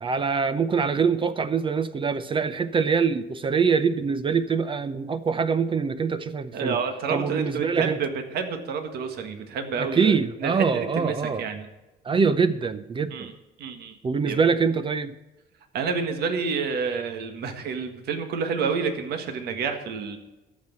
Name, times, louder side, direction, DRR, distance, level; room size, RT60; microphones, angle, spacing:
voice 1, 0.0-6.8 7.1-8.0 9.8-11.4 12.0-13.3 14.0-15.1, right 5 dB, 30° right, 13 dB, 0.7 m, -24 dB
voice 2, 6.5-11.7 13.1-13.3 13.6-14.0 14.2-14.4 15.7-20.2, right 5 dB, 70° right, 6 dB, 1.8 m, -29 dB
13.0 x 6.2 x 7.6 m, 1.1 s
cardioid pair, 110°, 17 cm